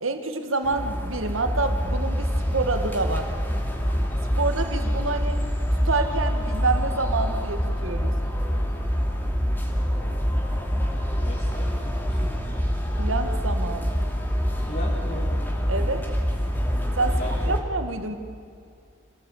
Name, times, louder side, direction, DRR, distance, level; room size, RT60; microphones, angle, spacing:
voice 1, 0.0-3.3 4.4-5.4 5.9-8.1 13.0-14.0 15.7-16.1 17.0-17.2 17.4-18.2, right 3 dB, 75° right, 6 dB, 2.1 m, -27 dB
sound 1, 0.6-17.6, equal, 10° left, 2.8 m, -26 dB
voice 2, 11.2-12.3 14.7-15.3 17.1-17.5, left 1 dB, 45° left, -5 dB, 3.6 m, -37 dB
26.5 x 18.0 x 8.6 m, 2.3 s
head